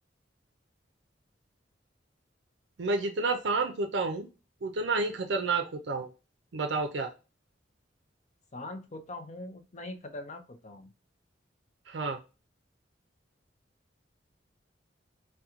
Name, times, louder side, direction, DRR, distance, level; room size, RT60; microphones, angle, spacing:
voice 1, 2.8-4.3 4.6-6.1 6.5-7.1 11.9-12.2, right 3 dB, 65° right, 4 dB, 0.5 m, -30 dB
voice 2, 8.5-10.9, left 2 dB, 40° left, 7 dB, 0.5 m, -42 dB
2.9 x 2.2 x 3.6 m, 0.30 s
head